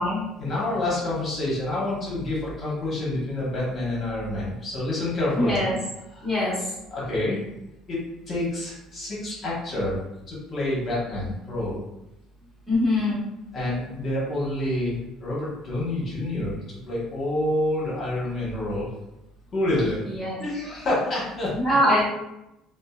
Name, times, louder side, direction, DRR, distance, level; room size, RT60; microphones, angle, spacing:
voice 1, 0.4-5.6 6.1-6.4 6.9-7.4 7.9-8.0 8.3-10.0 10.3-11.8 13.5-18.9 19.5-20.0 20.4-21.5, left 1 dB, 40° left, -7 dB, 1.1 m, -28 dB
voice 2, 5.4-5.8 6.2-6.6 12.7-13.2 20.1-20.4 21.6-22.0, left 1 dB, ahead, -9 dB, 1.2 m, -22 dB
2.7 x 2.3 x 2.3 m, 0.90 s
cardioid pair, 105°, 0 cm